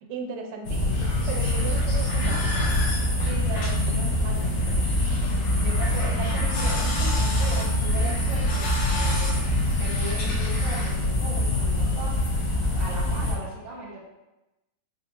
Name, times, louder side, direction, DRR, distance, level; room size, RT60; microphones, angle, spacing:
voice 1, 0.0-2.5 3.9-4.4, right 4 dB, 85° right, 3 dB, 2.1 m, -37 dB
sound 1, 0.6-13.3, left 1 dB, 65° left, 1.5 m, -24 dB
sound 2, 0.8-13.2, right 1 dB, 35° right, 0.7 m, -43 dB
sound 3, 0.9-10.9, left 2 dB, 85° left, 2.2 m, -35 dB
voice 2, 3.2-4.8 5.6-9.3 9.8-12.1 12.7-14.0, right 2 dB, 70° right, -4 dB, 2.1 m, -38 dB
5.2 x 2.5 x 2.8 m, 0.99 s
omnidirectional pair, 3.6 m